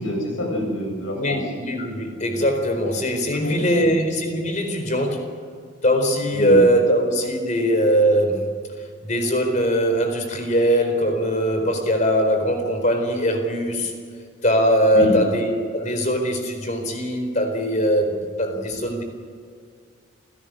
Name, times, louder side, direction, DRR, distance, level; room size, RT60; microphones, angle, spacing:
voice 1, 0.0-1.4 3.3-3.9 6.3-6.6 14.9-15.2, left 1 dB, 80° left, 2 dB, 7.5 m, -26 dB
voice 2, 1.1-5.3 5.8-8.5 9.0-13.9 14.4-18.1 18.4-19.0, equal, 35° left, 5 dB, 4.3 m, -21 dB
28.5 x 17.0 x 6.6 m, 2.1 s
head